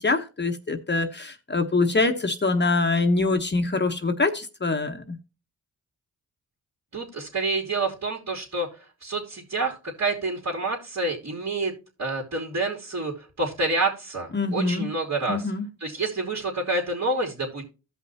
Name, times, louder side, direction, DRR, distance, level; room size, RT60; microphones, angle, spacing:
voice 1, 0.0-5.2 14.3-14.9 15.3-15.7, left 3 dB, 30° left, 1.1 m, -24 dB
voice 2, 6.9-8.7 9.0-11.7 12.0-15.5 15.8-17.6, right 2 dB, 50° right, 3.0 m, -28 dB
15.5 x 5.6 x 2.8 m
cardioid pair, 70°, 35 cm